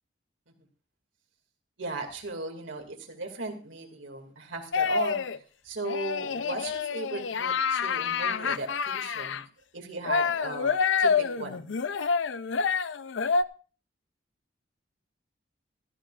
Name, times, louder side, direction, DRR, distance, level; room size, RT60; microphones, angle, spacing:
voice 1, 1.8-5.2 5.6-9.4 9.7-11.7, right 2 dB, 85° right, 3 dB, 2.4 m, -37 dB
sound 1, 4.7-5.4 5.8-9.4 10.1-13.4, left 5 dB, 80° left, 0.5 m, -27 dB
16.5 x 13.5 x 2.5 m, 0.37 s
head